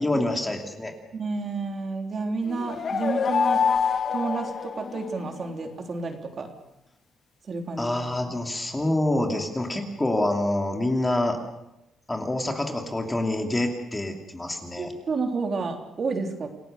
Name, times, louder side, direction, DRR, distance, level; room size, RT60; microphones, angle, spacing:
voice 1, 0.0-0.9 7.8-11.4 12.1-14.9, left 1 dB, 15° left, 3 dB, 2.8 m, -26 dB
voice 2, 1.1-3.6 4.1-6.5 7.5-8.0 8.2-8.3 14.8-16.5, right 4 dB, 40° right, 4 dB, 3.4 m, -30 dB
sound 1, 2.5-5.4, left 6 dB, 40° left, 1.4 m, -26 dB
28.0 x 18.0 x 6.7 m, 0.88 s
cardioid pair, 135°, 0 cm